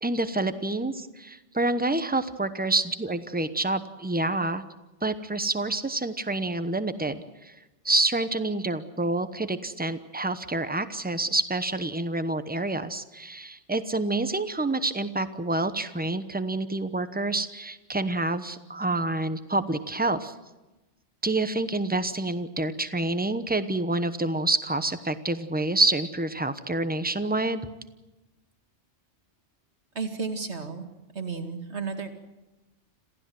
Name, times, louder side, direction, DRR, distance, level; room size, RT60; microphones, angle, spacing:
voice 1, 0.0-4.6 5.0-7.5 7.8-20.3 21.2-27.6, right 2 dB, 10° right, 11 dB, 0.9 m, -28 dB
voice 2, 30.0-30.9 31.1-32.1, right 5 dB, 70° right, 5 dB, 2.4 m, -32 dB
27.0 x 15.5 x 7.7 m, 1.1 s
omnidirectional pair, 1.2 m